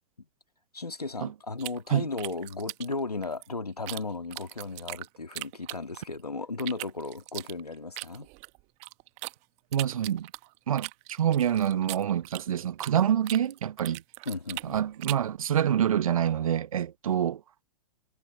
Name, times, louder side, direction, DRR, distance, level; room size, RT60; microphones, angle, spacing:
voice 1, 0.7-8.3 14.3-14.8, left 3 dB, 85° left, 2.2 m, -35 dB
sound 1, 1.6-4.0 4.3-6.2 6.6-9.3 9.7-13.0 13.2-15.3, right 27 dB, 35° right, 1.3 m, -40 dB
voice 2, 9.7-10.3 10.7-14.0 14.6-17.4, right 10 dB, 65° right, 0.9 m, -26 dB
figure-of-eight pair, 105°, 19 cm